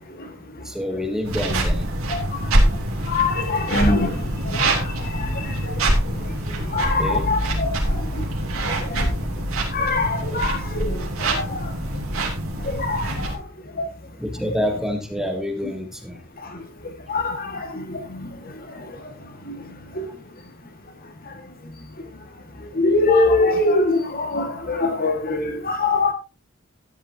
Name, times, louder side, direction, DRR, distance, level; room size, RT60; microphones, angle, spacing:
voice 1, 0.6-1.9 7.0-7.3 14.2-16.2, left 1 dB, ahead, 1.3 m, -27 dB
sound 1, 1.2-13.4, right 1 dB, 70° right, 3.4 m, -24 dB
voice 2, 3.1-5.8 6.7-8.2 8.7-9.1 9.7-11.0 11.3-11.7 12.6-13.4 13.8-13.9 17.1-18.3 19.5-19.6 20.0-20.1 22.8-26.1, left 2 dB, 45° left, 1.9 m, -23 dB
13.5 x 10.5 x 2.9 m
head